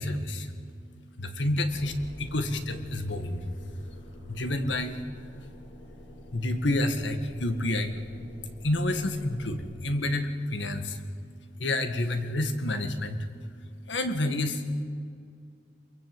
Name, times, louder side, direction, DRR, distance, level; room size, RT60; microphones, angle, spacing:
voice 1, 0.0-14.8, left 1 dB, 80° left, 8 dB, 1.9 m, -30 dB
sound 1, 1.7-9.7, left 1 dB, 60° left, 7.8 m, -47 dB
24.0 x 22.5 x 7.9 m, 2.3 s
head